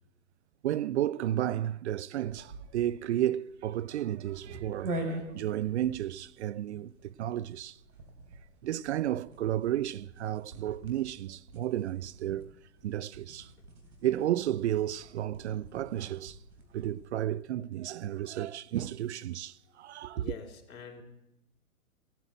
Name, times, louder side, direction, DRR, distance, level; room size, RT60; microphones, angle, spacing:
voice 1, 0.6-7.8 8.6-12.5 12.8-13.5 14.0-16.4 16.7-20.2, right 12 dB, 55° right, 0.4 m, -32 dB
sound 1, 2.2-17.1, right 1 dB, 85° right, 3.6 m, -45 dB
voice 2, 20.1-21.0, left 6 dB, 65° left, 3.6 m, -44 dB
16.0 x 10.0 x 8.0 m
hypercardioid pair, 125°, 43 cm